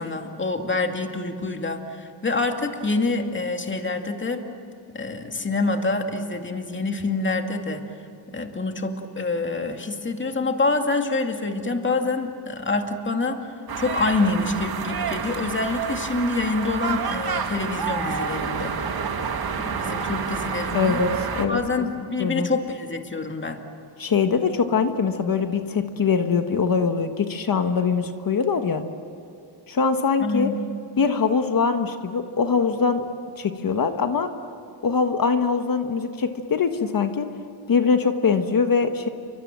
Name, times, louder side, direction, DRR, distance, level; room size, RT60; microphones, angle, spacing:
voice 1, 0.0-4.4 4.9-7.8 8.3-13.5 13.8-18.7 19.7-21.0 21.5-23.7 30.2-30.5, left 3 dB, 25° left, 4 dB, 2.3 m, -26 dB
sound 1, 13.7-21.5, right 6 dB, 50° right, 2.2 m, -29 dB
voice 2, 20.7-21.6 22.2-22.5 24.0-28.8 29.7-30.5 31.0-33.1 33.4-34.3 34.8-37.3 37.7-39.1, left 5 dB, 45° left, 7 dB, 1.5 m, -22 dB
29.0 x 24.5 x 7.6 m, 2.6 s
cardioid pair, 120°, 47 cm